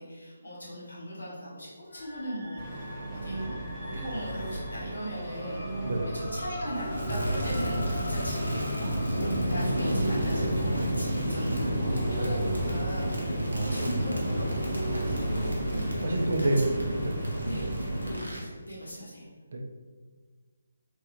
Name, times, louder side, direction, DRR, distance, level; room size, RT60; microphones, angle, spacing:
voice 1, 0.0-9.2 9.4-16.0 16.4-16.7 17.4-17.7 18.0-19.3, equal, 80° left, -6 dB, 1.3 m, -39 dB
sound 1, 1.9-10.0, left 1 dB, 25° left, 1.0 m, -43 dB
Engine, 2.6-18.1, right 2 dB, 5° left, 0.7 m, -36 dB
voice 2, 5.8-6.2 13.5-14.0 16.0-16.6 17.0-17.4 19.5-19.7, right 1 dB, 55° right, 2 dB, 0.5 m, -29 dB
Crackle, 6.9-18.5, equal, 85° right, 0.7 m, -30 dB
3.1 x 2.4 x 2.9 m, 1.4 s
figure-of-eight pair, 150°, 0 cm